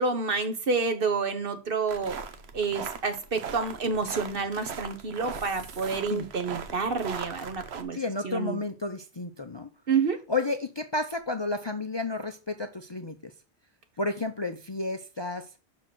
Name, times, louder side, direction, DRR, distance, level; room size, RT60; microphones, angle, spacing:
voice 1, 0.0-2.1 2.5-8.0 8.2-8.6 9.9-10.2, right 4 dB, 60° right, 1.3 m, -29 dB
sound 1, 1.9-7.8, right 6 dB, 75° right, 1.1 m, -39 dB
voice 2, 7.9-9.7 10.3-13.3 14.0-15.5, left 3 dB, 30° left, 0.5 m, -31 dB
6.2 x 4.5 x 6.0 m
omnidirectional pair, 1.1 m